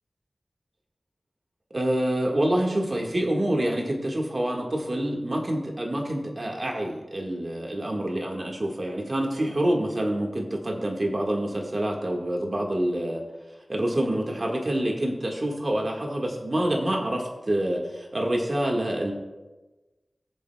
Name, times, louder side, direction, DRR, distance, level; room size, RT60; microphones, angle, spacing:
voice 1, 1.7-13.2 13.7-19.1, right 1 dB, 45° right, 1 dB, 1.8 m, -27 dB
19.5 x 7.4 x 2.3 m, 1.2 s
wide cardioid pair, 70°, 0 cm